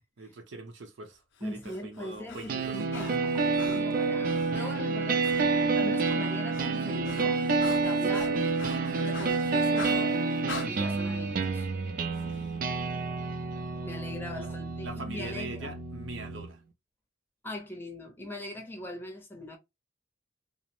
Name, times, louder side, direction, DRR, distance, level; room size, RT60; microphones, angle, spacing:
voice 1, 0.2-2.8 8.0-9.4 12.2-12.7 14.4-14.5 14.8-16.6, right 2 dB, 90° right, 0.7 m, -43 dB
Breathing, 1.4-4.6 5.2-5.5 5.8-10.7, left 5 dB, 75° left, 0.5 m, -45 dB
voice 2, 1.4-7.5 7.8-8.4 9.0-11.7 13.8-15.8 17.4-19.6, left 1 dB, 10° left, 0.6 m, -41 dB
sound 1, 2.5-16.5, right 4 dB, 45° right, 0.3 m, -29 dB
2.5 x 2.0 x 2.9 m
head